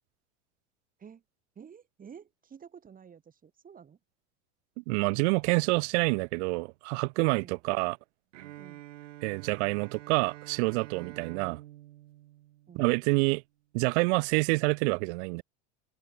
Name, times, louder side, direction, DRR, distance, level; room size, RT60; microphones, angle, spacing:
voice 1, 1.6-4.0 7.4-7.6 8.6-8.8 11.0-11.2 12.7-12.9, right 7 dB, 25° right, 1.7 m, -51 dB
voice 2, 4.8-8.0 9.2-11.6 12.7-13.4 13.7-15.4, right 28 dB, 65° right, 0.6 m, -27 dB
Bowed string instrument, 8.3-13.2, right 15 dB, 90° right, 1.4 m, -48 dB
open air
supercardioid pair, 105°, 36 cm